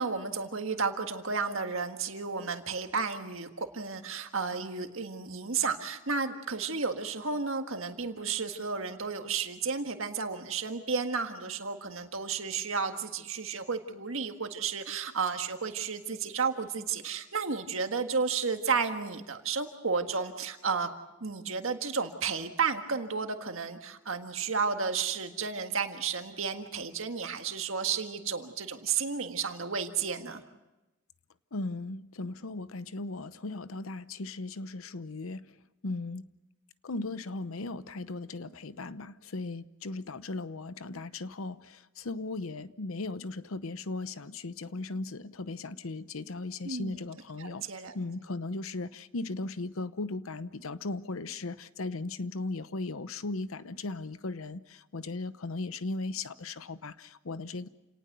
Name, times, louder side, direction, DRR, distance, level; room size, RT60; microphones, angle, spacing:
voice 1, 0.0-20.9 21.2-30.4 46.6-47.9, right 5 dB, 75° right, 6 dB, 1.7 m, -32 dB
voice 2, 31.5-35.5 35.8-36.3 36.8-47.6 47.9-57.7, left 3 dB, 80° left, 14 dB, 0.8 m, -37 dB
29.0 x 18.5 x 6.8 m, 1.0 s
head